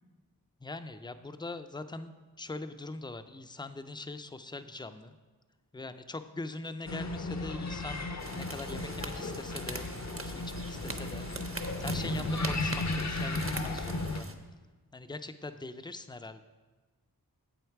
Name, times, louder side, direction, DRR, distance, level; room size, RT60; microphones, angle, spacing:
voice 1, 0.6-5.1 5.7-9.9 10.2-14.3 14.9-16.4, left 2 dB, 10° left, 10 dB, 0.4 m, -42 dB
sound 1, 6.9-14.2, left 2 dB, 45° left, 0.6 m, -35 dB
sound 2, 8.2-14.3, right 2 dB, 35° right, 0.7 m, -42 dB
7.9 x 7.8 x 4.7 m, 1.3 s
wide cardioid pair, 45°, 37 cm